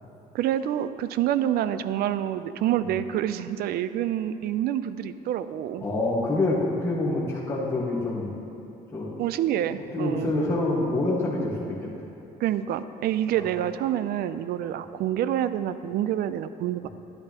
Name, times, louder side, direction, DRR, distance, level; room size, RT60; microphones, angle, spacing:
voice 1, 0.3-5.8 9.2-10.3 12.4-16.9, right 11 dB, 65° right, 13 dB, 0.4 m, -27 dB
voice 2, 5.8-8.3 8.9-9.1 9.9-11.9 16.8-16.9, left 2 dB, 15° left, -6 dB, 1.5 m, -26 dB
11.0 x 8.7 x 2.9 m, 2.7 s
cardioid pair, 110°, 17 cm